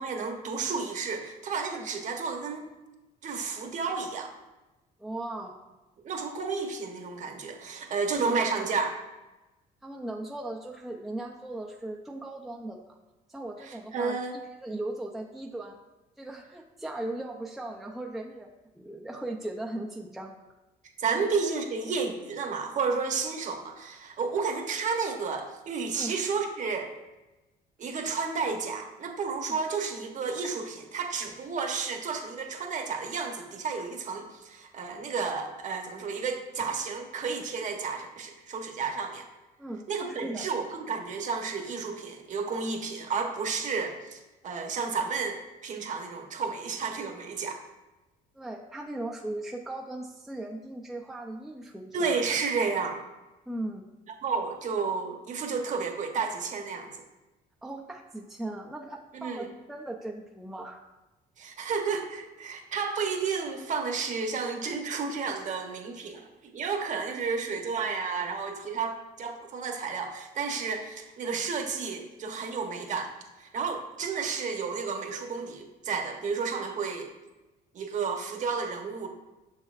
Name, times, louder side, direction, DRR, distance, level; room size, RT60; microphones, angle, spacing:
voice 1, 0.0-2.7 3.2-4.3 6.0-9.0 13.6-14.4 21.0-26.9 27.8-39.3 39.9-47.6 51.9-53.0 54.2-57.0 59.1-59.5 61.4-73.1 73.4-77.1 77.7-79.1, right 5 dB, 45° right, 4 dB, 1.0 m, -32 dB
voice 2, 5.0-5.6 9.8-12.8 13.3-14.2 14.6-15.8 16.2-18.5 18.7-20.3 21.2-21.3 25.9-26.1 29.5-29.6 39.6-40.5 48.3-52.2 53.5-53.9 57.6-60.8, right 1 dB, ahead, 0 dB, 0.5 m, -38 dB
6.3 x 6.3 x 2.5 m, 1.1 s
cardioid pair, 110°, 17 cm